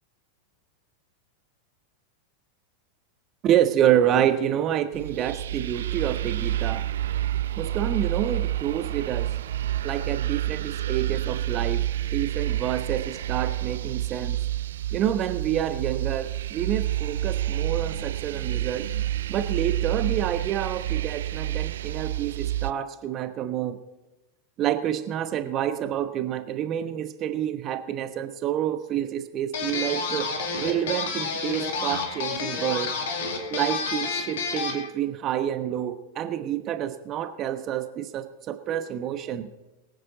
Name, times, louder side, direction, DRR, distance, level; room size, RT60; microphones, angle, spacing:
voice 1, 3.4-6.8 7.6-9.3 9.8-11.8 12.1-14.4 14.9-18.9 19.3-23.8 24.6-30.3 30.6-32.9 33.5-39.5, right 10 dB, 35° right, 10 dB, 1.1 m, -28 dB
sound 1, 4.9-22.7, right 13 dB, 60° right, 0.3 m, -29 dB
sound 2, 29.5-34.9, left 4 dB, 55° left, 2.3 m, -30 dB
22.5 x 9.3 x 3.9 m, 1.1 s
figure-of-eight pair, 90°, 0 cm